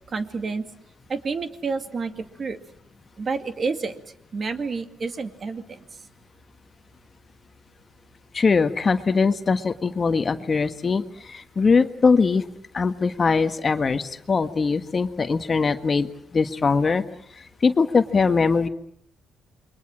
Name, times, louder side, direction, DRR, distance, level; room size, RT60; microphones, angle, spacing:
voice 1, 0.1-0.6 1.1-2.6 3.2-4.0 4.3-5.8, right 4 dB, 40° right, 8 dB, 2.3 m, -29 dB
voice 2, 8.3-12.4 12.7-17.0 17.3-18.7, left 4 dB, 35° left, 9 dB, 1.5 m, -21 dB
28.5 x 23.0 x 7.5 m, 0.68 s
cardioid pair, 90°, 0 cm